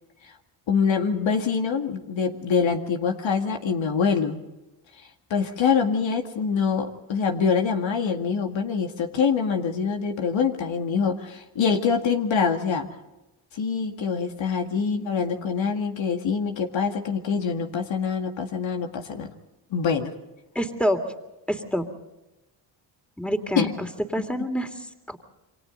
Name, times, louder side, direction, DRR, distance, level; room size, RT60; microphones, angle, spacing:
voice 1, 0.7-4.4 5.3-12.9 13.5-19.3 19.7-20.1 23.6-23.7, left 6 dB, 65° left, 4 dB, 2.1 m, -25 dB
voice 2, 20.5-21.0 21.5-21.9 23.2-25.2, equal, ahead, 6 dB, 3.0 m, -27 dB
28.5 x 24.0 x 4.0 m, 1.0 s
supercardioid pair, 65°, 48 cm